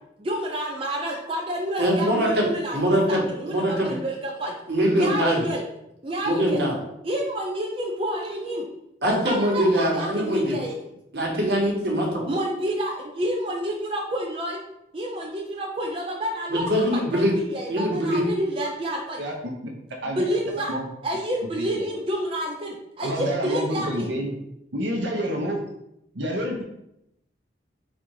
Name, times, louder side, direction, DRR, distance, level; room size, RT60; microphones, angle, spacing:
voice 1, 0.2-4.5 4.9-5.6 6.0-6.6 7.0-8.6 9.2-10.8 12.3-14.6 14.9-16.7 16.9-19.2 20.0-20.7 21.0-24.1, right 1 dB, 30° right, -1 dB, 0.5 m, -29 dB
voice 2, 1.8-2.4 2.7-3.2 3.5-4.0 4.7-5.4 6.2-6.7 9.0-10.6 11.1-12.2 16.5-17.3 17.7-18.2, equal, 60° right, -1 dB, 1.2 m, -23 dB
voice 3, 23.0-24.3 24.7-25.6 26.1-26.6, equal, 80° right, 0 dB, 0.8 m, -28 dB
4.2 x 2.5 x 4.7 m, 0.82 s
head